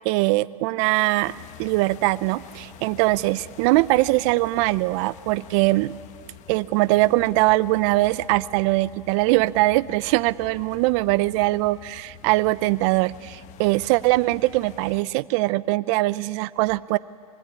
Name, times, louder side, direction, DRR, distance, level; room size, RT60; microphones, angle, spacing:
voice 1, 0.0-1.3 1.6-5.9 6.5-17.0, right 20 dB, 55° right, 16 dB, 0.7 m, -22 dB
sound 1, 1.2-15.0, left 11 dB, 40° left, 1.1 m, -46 dB
25.0 x 22.0 x 9.7 m, 2.2 s
hypercardioid pair, 110°, 19 cm